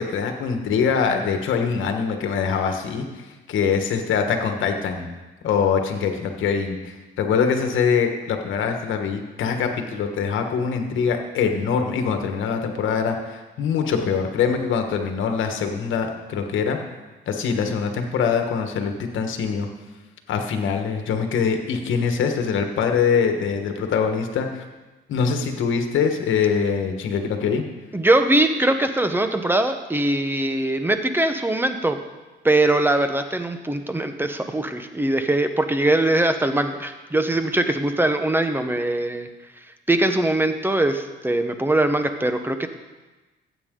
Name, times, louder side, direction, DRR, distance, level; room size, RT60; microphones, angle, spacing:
voice 1, 0.0-5.1 5.4-16.8 17.3-19.7 20.3-24.6 25.1-27.6, left 6 dB, 75° left, 5 dB, 1.4 m, -23 dB
voice 2, 27.9-32.0 32.4-39.3 39.9-42.7, right 1 dB, 10° right, 8 dB, 1.0 m, -21 dB
14.5 x 8.3 x 3.8 m, 1.2 s
cardioid pair, 90°, 20 cm